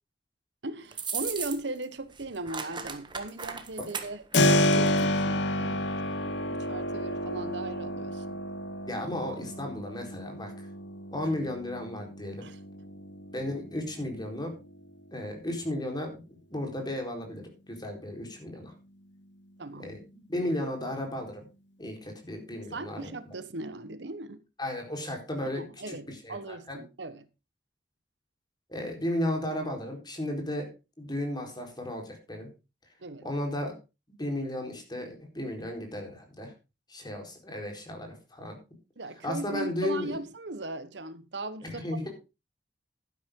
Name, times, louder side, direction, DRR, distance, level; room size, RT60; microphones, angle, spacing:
voice 1, 0.6-5.9 6.2-8.4 12.4-12.6 19.6-19.9 22.7-24.4 25.5-27.3 33.0-33.2 39.0-42.1, right 2 dB, 80° right, 1.2 m, -38 dB
sound 1, 0.9-1.8 2.1-5.0, right 6 dB, 25° right, 1.5 m, -37 dB
Keyboard (musical), 4.3-15.0, left 1 dB, 85° left, 1.1 m, -30 dB
voice 2, 8.9-10.7 11.1-12.4 13.3-14.5 15.1-18.7 19.8-20.0 20.3-21.4 21.8-23.1 24.6-26.8 28.7-30.7 31.0-32.5 33.2-33.7 34.2-36.5 36.9-38.6 39.2-40.2 41.6-42.1, left 1 dB, 25° left, 4.2 m, -34 dB
12.0 x 10.5 x 3.7 m
head